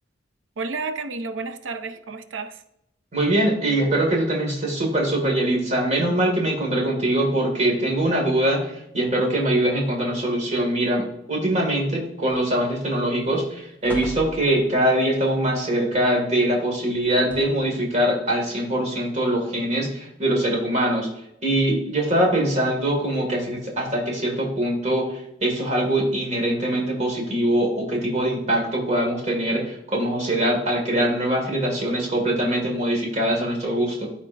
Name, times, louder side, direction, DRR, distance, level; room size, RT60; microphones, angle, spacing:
voice 1, 0.6-2.6, right 4 dB, 80° right, 0.5 m, -31 dB
voice 2, 3.1-21.1 21.4-34.1, right 1 dB, 40° right, 1.9 m, -23 dB
sound 1, 12.3-12.8 13.2-13.4 13.8-14.9 16.9-17.8 18.5-18.6, left 1 dB, 10° left, 1.4 m, -39 dB
13.0 x 4.3 x 2.5 m
head